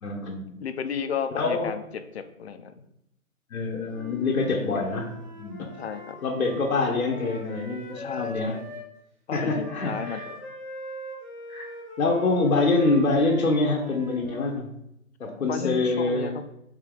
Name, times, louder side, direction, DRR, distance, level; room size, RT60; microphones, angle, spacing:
voice 1, 0.0-0.6 1.4-1.7 3.5-5.7 6.2-8.6 9.3-10.2 11.5-11.7 12.0-14.8 15.2-16.3, left 3 dB, 80° left, 0 dB, 0.9 m, -25 dB
voice 2, 0.6-1.8 2.1-2.8 5.8-6.2 7.9-8.6 9.3-10.4 15.4-16.3, left 7 dB, 50° left, 9 dB, 0.4 m, -33 dB
Wind instrument woodwind instrument, 3.9-8.9 9.6-14.6, left 2 dB, 15° right, 1.0 m, -41 dB
4.6 x 2.8 x 3.7 m, 0.80 s
figure-of-eight pair, 140°, 42 cm